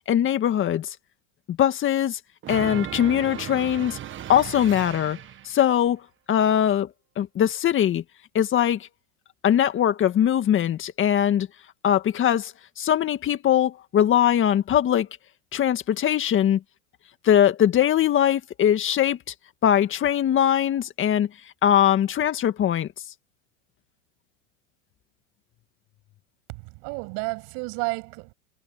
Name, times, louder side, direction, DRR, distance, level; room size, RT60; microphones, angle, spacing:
voice 1, 0.1-1.0 1.5-2.2 2.5-4.0 4.3-5.2 5.4-6.0 6.3-6.9 7.2-8.0 8.3-8.9 9.4-11.5 11.8-15.1 15.5-16.6 17.2-19.2 19.6-21.3 21.6-22.9, left 10 dB, 30° left, 1.9 m, -21 dB
sound 1, 2.4-5.6, right 11 dB, 30° right, 1.6 m, -36 dB
voice 2, 26.5-28.3, right 37 dB, 60° right, 7.1 m, -32 dB
supercardioid pair, 115°, 38 cm